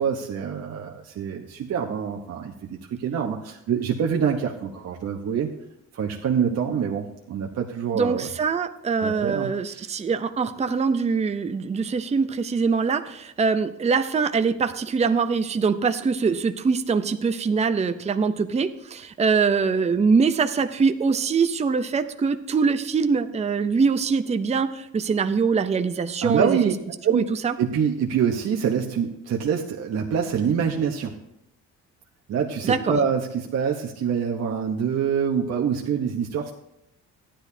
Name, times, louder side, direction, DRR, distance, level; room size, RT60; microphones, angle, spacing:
voice 1, 0.0-5.5 5.9-8.3 9.0-9.9 26.2-26.7 27.0-27.3 27.6-31.1 32.3-36.5, right 7 dB, 60° right, 1 dB, 0.9 m, -25 dB
voice 2, 7.9-26.6 27.1-27.5 32.6-32.8, right 5 dB, 20° right, 9 dB, 0.6 m, -23 dB
14.0 x 10.0 x 2.7 m, 0.83 s
cardioid pair, 90°, 30 cm